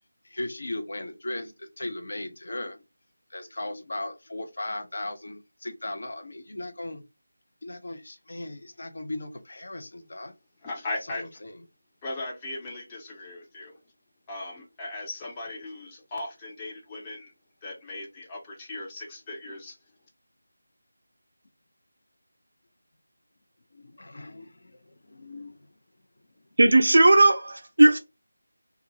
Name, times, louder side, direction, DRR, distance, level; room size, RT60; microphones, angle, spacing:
voice 1, 0.2-2.8 3.3-7.0 7.6-10.3 11.1-11.5 23.7-25.7, left 1 dB, 50° left, 0.7 m, -37 dB
voice 2, 10.6-11.4 12.0-13.8 14.3-17.3 17.6-19.8, left 2 dB, 15° left, 0.6 m, -38 dB
voice 3, 26.6-28.0, right 2 dB, 55° right, 0.6 m, -17 dB
2.6 x 2.4 x 2.9 m
figure-of-eight pair, 165°, 0 cm